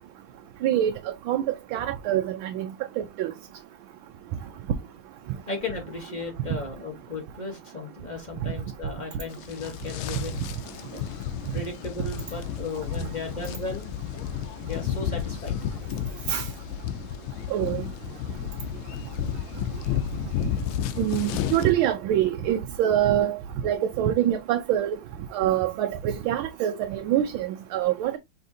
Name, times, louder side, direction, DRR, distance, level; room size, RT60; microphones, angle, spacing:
voice 1, 1.7-2.2 2.5-2.7 3.2-3.3 16.3-16.4 17.5-17.8 21.0-23.4 23.6-24.9 25.3-28.2, right 11 dB, 85° right, 1.4 m, -24 dB
voice 2, 5.2-10.3 10.9-11.0 11.5-13.9 14.6-15.5, left 3 dB, 25° left, 1.1 m, -35 dB
sound 1, 9.3-21.7, left 10 dB, 80° left, 1.4 m, -32 dB
5.5 x 3.4 x 2.6 m
omnidirectional pair, 2.2 m